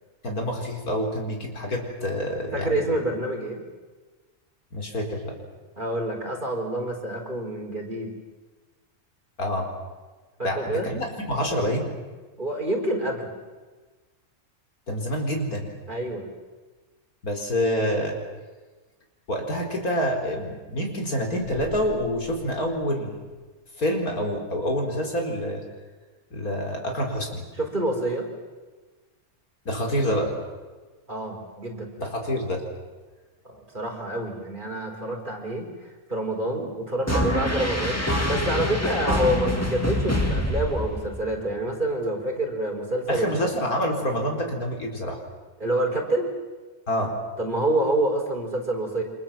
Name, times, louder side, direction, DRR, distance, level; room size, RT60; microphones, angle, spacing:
voice 1, 0.2-2.8 4.7-5.3 9.4-9.7 10.4-11.9 14.9-15.7 17.2-18.2 19.3-23.2 23.8-25.6 26.3-27.4 29.7-30.3 32.0-32.6 43.1-45.2 46.9-47.1, equal, 85° left, 2 dB, 4.7 m, -27 dB
voice 2, 2.5-3.6 5.8-8.1 10.4-10.9 12.4-13.3 15.9-16.3 27.5-28.3 31.1-31.9 33.4-43.6 45.6-46.3 47.4-49.0, right 1 dB, 35° right, 1 dB, 4.9 m, -27 dB
sound 1, 21.4-23.7, left 3 dB, 60° left, 8.4 m, -45 dB
sound 2, 37.1-41.4, left 1 dB, 10° left, 2.8 m, -25 dB
28.5 x 26.0 x 7.6 m, 1.3 s
omnidirectional pair, 1.5 m